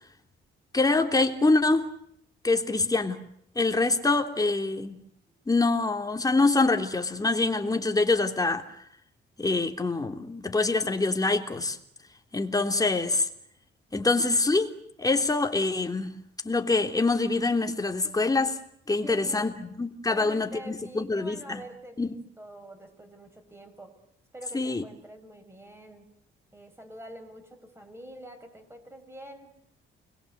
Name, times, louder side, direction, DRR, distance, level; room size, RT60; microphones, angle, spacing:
voice 1, 0.7-1.9 2.4-3.2 3.6-5.0 5.5-8.7 9.4-11.8 12.3-13.3 13.9-14.7 15.0-16.2 16.4-18.6 18.9-21.6 22.0-22.1 24.5-24.8, left 3 dB, 20° left, 3.4 m, -25 dB
voice 2, 19.0-19.6 20.0-24.0 24.3-26.1 26.5-29.6, right 1 dB, 10° right, 7.2 m, -46 dB
30.0 x 22.0 x 8.1 m
cardioid pair, 90°, 20 cm